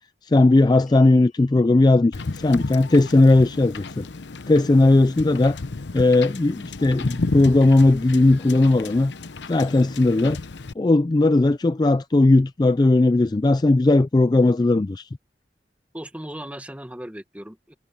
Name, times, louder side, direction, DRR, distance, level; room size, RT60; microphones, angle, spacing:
voice 1, 0.3-4.1 4.5-5.6 5.9-9.1 9.5-10.4 10.8-15.0, left 2 dB, 25° left, 0.3 m, -17 dB
sound 1, 0.9-7.1, left 7 dB, 45° left, 7.0 m, -66 dB
Wind / Boat Water vehicle, 2.1-10.7, left 3 dB, 80° left, 0.8 m, -33 dB
voice 2, 15.9-17.7, right 1 dB, 10° right, 1.4 m, -37 dB
head